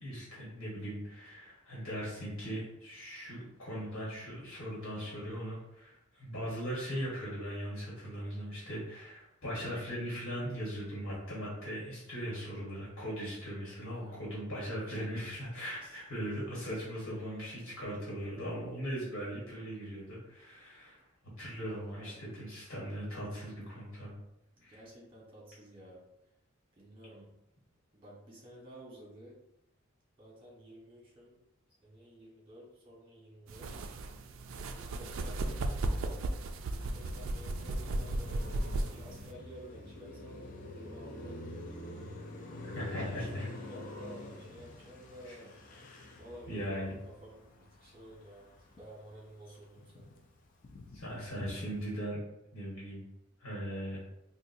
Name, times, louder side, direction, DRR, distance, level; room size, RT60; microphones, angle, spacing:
voice 1, 0.0-21.0 21.4-24.1 24.6-24.8 42.7-43.5 45.2-45.3 46.5-47.0 50.9-52.2 52.5-53.0 53.4-54.0, equal, 65° left, -7 dB, 1.4 m, -39 dB
voice 2, 13.9-14.2 15.8-16.0 17.0-17.7 21.6-22.1 24.6-26.0 26.8-27.3 27.9-29.4 30.2-31.4 31.8-33.9 34.7-36.2 36.7-38.5 38.8-40.4 40.7-41.4 42.8-45.6 46.2-50.2, equal, 25° right, -5 dB, 1.3 m, -52 dB
sound 1, 33.5-39.3, right 2 dB, 70° right, 0.3 m, -35 dB
Car passing by, 36.6-49.1 49.5-52.0, left 2 dB, 40° left, 0.4 m, -46 dB
4.0 x 2.4 x 2.6 m, 0.87 s
head